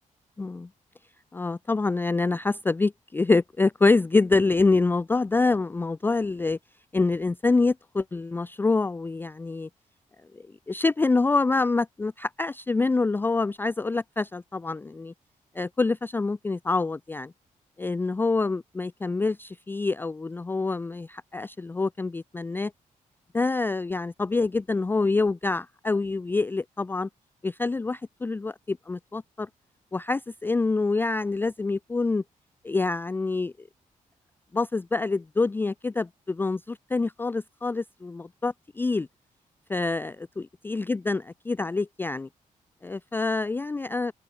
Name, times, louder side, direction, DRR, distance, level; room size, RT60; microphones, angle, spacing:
voice 1, 0.4-0.7 1.3-6.6 6.9-9.7 10.3-15.1 15.6-17.3 17.8-22.7 23.3-27.1 27.4-29.5 29.9-32.2 32.6-33.7 34.5-39.1 39.7-42.3 42.8-44.1, left 3 dB, 15° left, 0.3 m, -26 dB
open air
cardioid pair, 100°, 14 cm